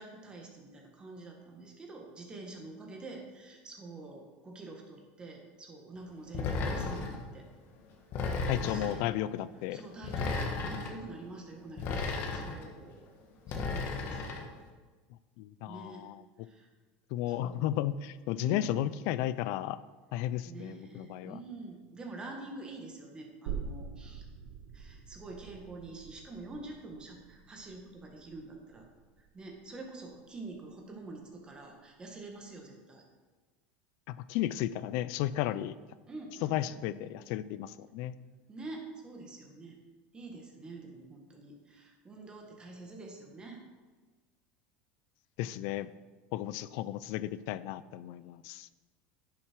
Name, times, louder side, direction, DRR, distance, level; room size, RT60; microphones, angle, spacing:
voice 1, 0.0-7.4 8.5-9.1 9.6-13.0 13.5-14.5 15.7-16.1 16.4-16.7 17.3-17.7 18.3-18.8 20.2-24.3 24.7-28.9 29.2-33.0 36.1-37.1 38.5-39.8 40.1-43.6, right 2 dB, 20° right, 1 dB, 1.8 m, -46 dB
sound 1, 6.3-7.2 8.1-9.0 10.0-10.9 11.8-12.7 13.5-14.4, left 4 dB, 45° left, 1.5 m, -34 dB
voice 2, 8.5-9.8 15.4-16.2 17.1-19.8 20.1-21.4 34.1-35.7 36.4-38.1 45.4-45.9 46.3-48.7, left 13 dB, 60° left, 16 dB, 0.5 m, -34 dB
sound 2, 23.5-30.7 31.1-31.2, right 6 dB, 80° right, 1.0 m, -45 dB
10.0 x 7.0 x 4.6 m, 1.3 s
supercardioid pair, 140°, 5 cm